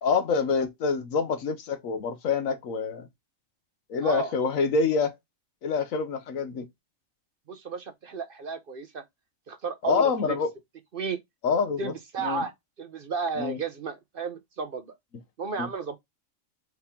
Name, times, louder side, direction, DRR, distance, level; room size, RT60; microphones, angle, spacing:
voice 1, 0.0-3.1 3.9-5.1 5.6-6.7 9.8-10.5 11.4-11.9 12.2-12.5 13.4-13.6 15.6-15.7, left 5 dB, 80° left, 1.3 m, -26 dB
voice 2, 4.0-4.3 7.5-9.0 9.5-10.4 10.9-11.2 11.8-12.5 12.8-15.0 15.4-16.0, right 5 dB, 50° right, 0.7 m, -33 dB
4.7 x 3.5 x 2.8 m
omnidirectional pair, 1.4 m